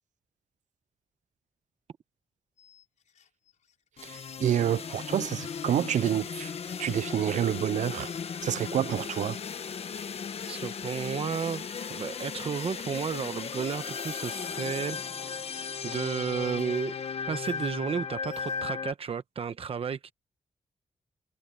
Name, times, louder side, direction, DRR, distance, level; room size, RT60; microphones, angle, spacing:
sound 1, 2.6-18.8, left 8 dB, 85° left, 4.8 m, -59 dB
sound 2, 4.0-18.9, left 6 dB, 55° left, 1.1 m, -36 dB
voice 1, 4.0-6.5 6.8-8.1 8.4-9.4, right 10 dB, 90° right, 0.4 m, -28 dB
voice 2, 10.5-15.0 15.4-17.0 17.3-20.1, right 6 dB, 50° right, 1.0 m, -33 dB
wide cardioid pair, 155°, 12 cm